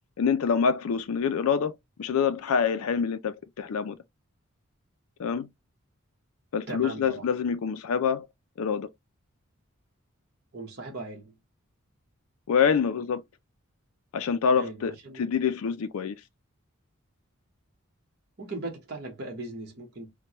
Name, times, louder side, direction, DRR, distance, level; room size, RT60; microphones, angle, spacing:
voice 1, 0.2-1.7 2.0-4.0 5.2-5.5 6.5-8.3 8.6-8.9 12.5-13.2 14.1-16.2, left 6 dB, 80° left, 0.4 m, -26 dB
voice 2, 6.7-7.3 10.5-11.3 14.5-15.3 18.4-20.1, right 2 dB, 50° right, 1.0 m, -38 dB
4.5 x 2.2 x 2.9 m
head